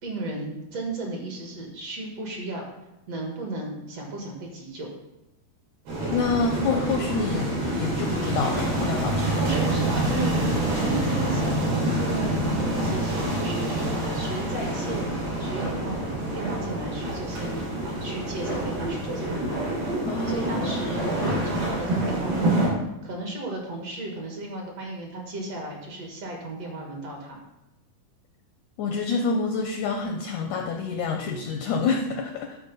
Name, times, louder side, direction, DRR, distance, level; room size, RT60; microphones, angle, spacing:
voice 1, 0.0-2.6 3.1-4.9 9.4-19.7 20.0-22.7 23.0-27.4, right 2 dB, 50° right, 0 dB, 2.4 m, -35 dB
sound 1, 5.9-22.7, right 1 dB, 90° right, 5.9 m, -27 dB
voice 2, 6.1-7.5 7.8-9.4 20.0-20.9 28.8-32.6, left 4 dB, 75° left, 3 dB, 1.8 m, -27 dB
11.0 x 4.5 x 6.8 m, 0.93 s
omnidirectional pair, 4.2 m